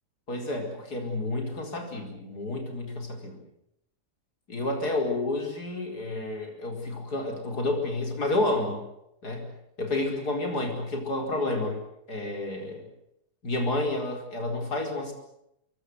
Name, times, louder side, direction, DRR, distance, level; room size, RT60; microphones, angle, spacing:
voice 1, 0.3-3.4 4.5-8.8 9.2-9.5 9.8-11.8 12.1-12.9 13.4-15.1, left 2 dB, 75° left, 3 dB, 5.3 m, -30 dB
26.5 x 22.5 x 8.1 m, 0.79 s
omnidirectional pair, 1.7 m